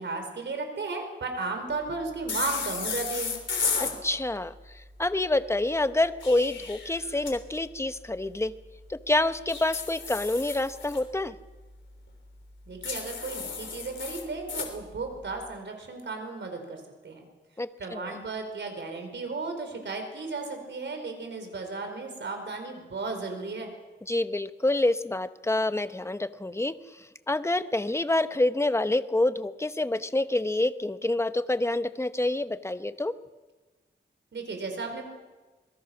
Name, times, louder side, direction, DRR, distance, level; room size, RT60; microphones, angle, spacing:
voice 1, 0.0-3.3 12.7-17.3 17.8-23.7 34.3-35.0, right 3 dB, 75° right, 5 dB, 4.7 m, -34 dB
sound 1, 2.3-4.0 6.0-7.3 9.5-11.0 12.8-14.7, left 5 dB, 90° left, 3.5 m, -33 dB
voice 2, 3.8-8.5 8.9-11.3 17.6-18.2 24.0-33.2, left 2 dB, 15° left, 11 dB, 1.0 m, -27 dB
26.0 x 21.5 x 6.1 m, 1.2 s
wide cardioid pair, 90°, 19 cm